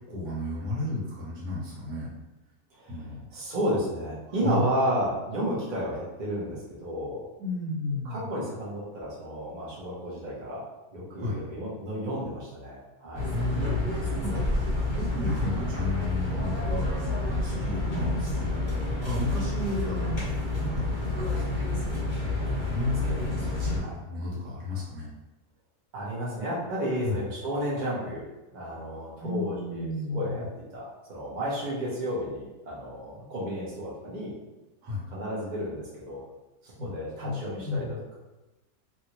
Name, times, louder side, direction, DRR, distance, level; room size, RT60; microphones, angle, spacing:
voice 1, 0.1-2.1 2.9-3.2 4.4-4.6 7.4-8.3 11.2-11.3 13.3-16.8 17.2-21.7 22.2-25.1 27.0-27.2 29.2-30.4 34.8-35.0 36.8-36.9 37.2-38.0, left 2 dB, 85° right, -6 dB, 1.6 m, -33 dB
voice 2, 3.3-7.2 8.0-10.6 10.9-13.2 23.8-23.9 25.9-28.3 28.5-30.5 30.7-34.3 35.1-36.2 36.8-38.2, equal, 35° right, -7 dB, 0.9 m, -32 dB
sound 1, 13.1-23.8, left 2 dB, 35° left, 1.0 m, -29 dB
3.0 x 2.8 x 2.9 m, 1.0 s
omnidirectional pair, 1.8 m